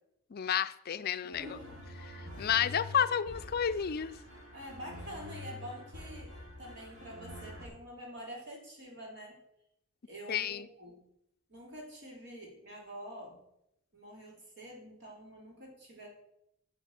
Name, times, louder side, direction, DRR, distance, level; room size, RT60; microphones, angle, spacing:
voice 1, 0.3-1.5 2.2-4.1 10.3-10.7, left 8 dB, 45° left, 0.4 m, -31 dB
voice 2, 1.2-1.8 4.5-6.3 6.6-9.4 10.1-11.0 11.5-13.4 13.9-16.1, equal, 55° right, 3.8 m, -47 dB
sound 1, 1.3-7.7, left 2 dB, 80° right, 4.5 m, -47 dB
9.2 x 7.2 x 7.6 m
head